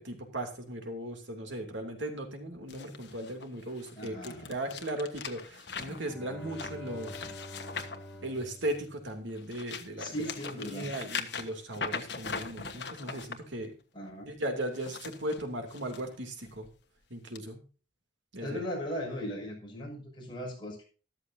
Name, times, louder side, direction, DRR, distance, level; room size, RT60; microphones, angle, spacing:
voice 1, 0.0-7.1 8.2-10.3 10.6-13.7 14.3-16.7 17.1-17.6 18.3-18.6, right 1 dB, 80° right, 4 dB, 2.8 m, -37 dB
sound 1, 2.7-8.8 9.3-13.4 14.6-16.0 16.5-16.7 17.4-17.5, left 5 dB, 70° left, 1.3 m, -41 dB
voice 2, 3.9-4.5 10.0-10.9 13.9-14.3 18.4-20.8, equal, 25° left, -2 dB, 6.1 m, -38 dB
Bowed string instrument, 5.7-9.7, left 1 dB, 5° left, 2.5 m, -47 dB
13.0 x 13.0 x 2.7 m, 0.36 s
head